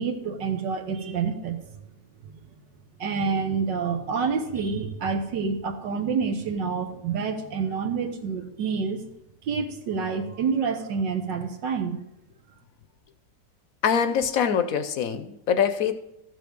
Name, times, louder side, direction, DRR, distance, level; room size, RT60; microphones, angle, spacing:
voice 1, 0.0-1.6 3.0-9.0 9.4-12.0, right 5 dB, 85° right, 5 dB, 1.8 m, -28 dB
voice 2, 13.8-15.9, left 7 dB, 65° left, 11 dB, 1.0 m, -24 dB
13.5 x 6.0 x 5.2 m, 0.85 s
omnidirectional pair, 1.9 m